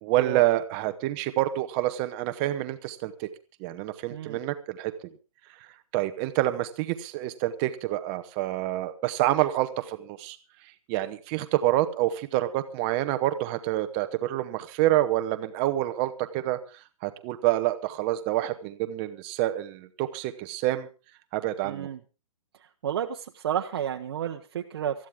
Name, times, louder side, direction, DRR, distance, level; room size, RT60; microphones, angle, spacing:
voice 1, 0.0-3.3 3.6-5.1 5.9-10.4 10.9-16.6 17.0-20.9 21.3-21.9, right 15 dB, 15° right, 10 dB, 0.8 m, -27 dB
voice 2, 4.1-4.4 21.6-22.0 22.8-25.1, right 9 dB, 40° right, 3 dB, 1.0 m, -31 dB
19.5 x 14.0 x 3.6 m, 0.34 s
hypercardioid pair, 170°, 18 cm